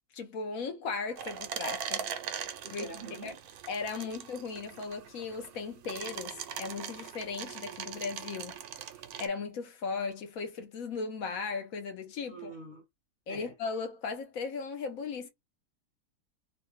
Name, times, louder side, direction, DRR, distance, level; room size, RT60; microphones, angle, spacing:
voice 1, 0.1-2.1 2.7-2.8 3.2-3.3 3.7-8.6 9.2-12.5 13.3-15.3, left 4 dB, 70° left, 1.2 m, -37 dB
sound 1, 1.2-9.3, right 8 dB, 90° right, 1.1 m, -40 dB
voice 2, 2.6-3.4 12.3-12.8 13.3-13.5, right 3 dB, 60° right, 0.5 m, -45 dB
3.2 x 2.1 x 3.1 m
omnidirectional pair, 1.5 m